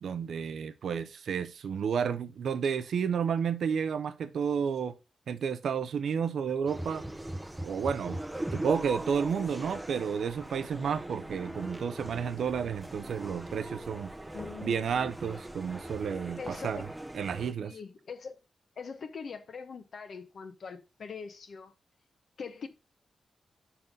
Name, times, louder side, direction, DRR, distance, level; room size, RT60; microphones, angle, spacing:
voice 1, 0.0-5.0 5.3-7.0 7.6-8.2 8.5-14.1 14.6-16.9 17.1-17.8, right 7 dB, 85° right, 0.6 m, -31 dB
sound 1, 6.7-17.5, right 1 dB, 10° right, 0.6 m, -40 dB
voice 2, 14.3-15.1 16.4-16.8 17.6-18.4 18.8-21.7 22.4-22.7, left 5 dB, 65° left, 1.1 m, -42 dB
5.7 x 5.4 x 5.2 m
wide cardioid pair, 100°, 0 cm